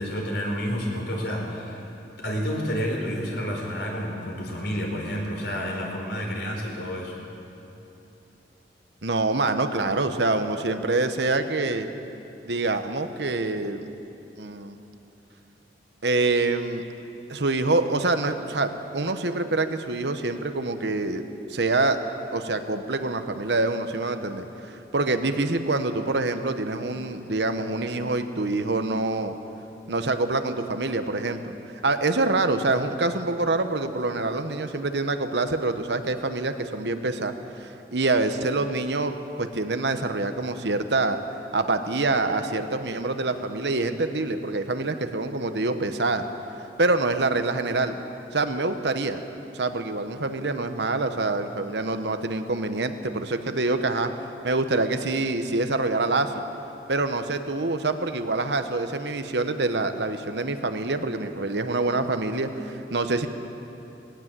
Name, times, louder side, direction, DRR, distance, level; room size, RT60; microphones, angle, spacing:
voice 1, 0.0-1.8 2.2-7.1, equal, 70° left, 0 dB, 4.6 m, -29 dB
voice 2, 9.0-11.9 12.4-13.9 14.4-14.8 16.0-16.8 17.3-21.2 21.5-22.0 22.3-29.3 29.9-31.5 31.8-37.3 37.6-41.2 41.5-46.3 46.8-48.0 48.3-49.2 49.5-54.1 54.4-56.3 56.9-63.3, right 2 dB, 75° right, 8 dB, 1.1 m, -26 dB
19.0 x 18.0 x 7.6 m, 2.8 s
head